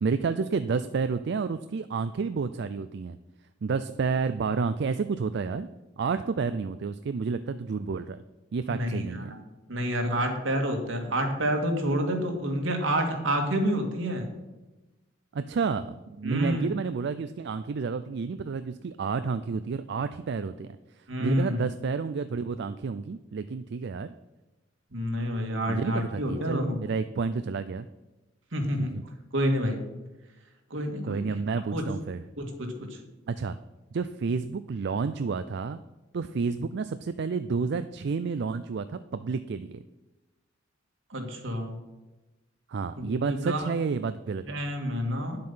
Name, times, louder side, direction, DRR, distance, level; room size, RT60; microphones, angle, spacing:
voice 1, 0.0-3.2 3.6-5.7 6.0-8.2 8.5-9.4 15.3-24.1 25.7-27.9 28.8-29.0 31.1-32.2 33.3-33.6 33.9-35.8 36.1-39.8 42.7-44.6, right 5 dB, 60° right, 11 dB, 0.4 m, -30 dB
voice 2, 8.7-9.4 9.7-14.3 16.2-16.7 21.1-21.6 24.9-26.8 28.5-29.0 29.3-29.8 30.7-31.3 31.7-31.8 32.4-33.0 41.1-41.8 43.0-43.7 44.4-45.4, equal, 80° right, 3 dB, 2.0 m, -28 dB
9.8 x 7.6 x 5.7 m, 1.1 s
head